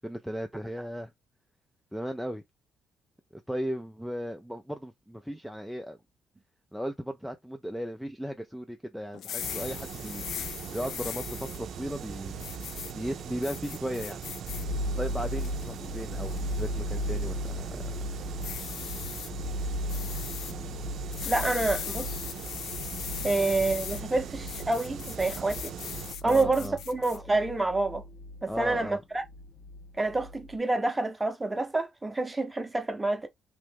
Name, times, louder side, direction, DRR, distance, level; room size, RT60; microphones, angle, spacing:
voice 1, 0.0-1.1 1.9-2.4 3.3-6.0 6.7-12.3 12.9-14.2 15.0-17.8 23.1-23.4 26.2-26.8 28.5-29.0, equal, ahead, 0.5 m, -36 dB
sound 1, 9.1-11.6 12.4-12.9 13.4-14.6 15.1-15.7 16.3-16.6 18.4-19.3 19.9-20.5 21.1-24.0 24.5-27.2, left 10 dB, 75° left, 0.4 m, -39 dB
sound 2, 9.4-26.2, right 7 dB, 70° right, 0.5 m, -40 dB
sound 3, 14.5-30.6, left 1 dB, 45° left, 1.2 m, -37 dB
voice 2, 21.3-22.1 23.2-25.7 26.2-28.0 28.4-29.2 30.0-33.3, right 2 dB, 15° right, 0.8 m, -28 dB
3.0 x 2.5 x 3.4 m
cardioid pair, 90°, 0 cm